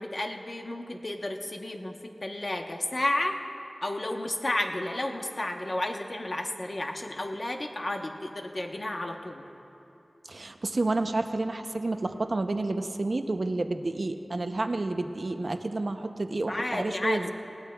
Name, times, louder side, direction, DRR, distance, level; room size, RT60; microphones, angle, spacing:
voice 1, 0.0-3.4 3.8-9.5 16.5-17.3, left 1 dB, 50° left, 3 dB, 1.0 m, -32 dB
voice 2, 10.3-17.3, right 2 dB, 65° right, 7 dB, 0.6 m, -30 dB
20.0 x 18.0 x 2.3 m, 2.9 s
wide cardioid pair, 60°, 0 cm